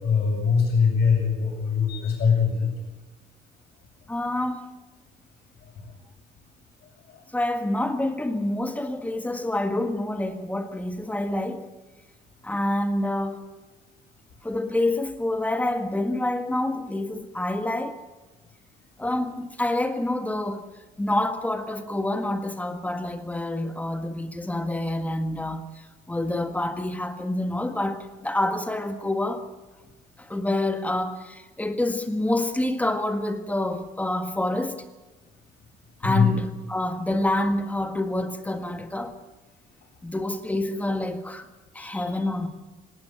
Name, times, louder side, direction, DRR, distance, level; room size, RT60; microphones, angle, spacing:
voice 1, 0.0-2.7 5.8-5.9 7.1-7.2 36.0-36.3 41.8-42.1, left 6 dB, 75° left, 7.9 m, -22 dB
voice 2, 4.1-4.6 7.3-11.7 12.4-13.4 14.4-18.0 19.0-20.7 21.0-29.4 30.2-34.8 36.0-39.2 40.0-41.5 41.7-42.5, left 1 dB, 10° left, 1.7 m, -27 dB
19.5 x 18.0 x 7.9 m
cardioid pair, 110°, 17 cm